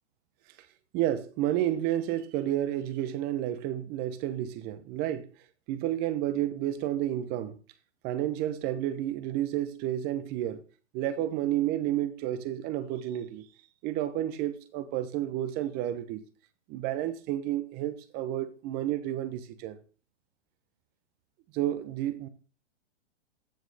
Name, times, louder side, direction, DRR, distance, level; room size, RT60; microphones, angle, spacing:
voice 1, 0.9-5.3 5.7-7.6 8.0-10.6 10.9-13.5 13.8-16.2 16.7-19.8 21.5-22.3, right 12 dB, 25° right, 0.9 m, -31 dB
14.5 x 6.1 x 3.4 m
hypercardioid pair, 135°, 37 cm